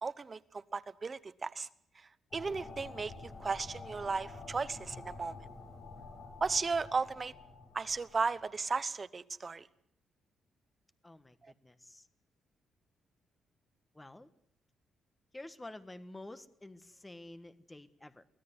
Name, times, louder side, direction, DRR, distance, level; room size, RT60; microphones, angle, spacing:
voice 1, 0.0-1.7 2.3-5.3 6.4-7.3 7.7-9.7, right 4 dB, 25° right, 1.0 m, -35 dB
sound 1, 2.3-8.7, left 3 dB, 40° left, 7.0 m, -49 dB
voice 2, 11.0-12.1 13.9-14.3 15.3-18.2, left 2 dB, 10° left, 1.4 m, -50 dB
24.0 x 16.5 x 9.5 m
cardioid pair, 150°, 0 cm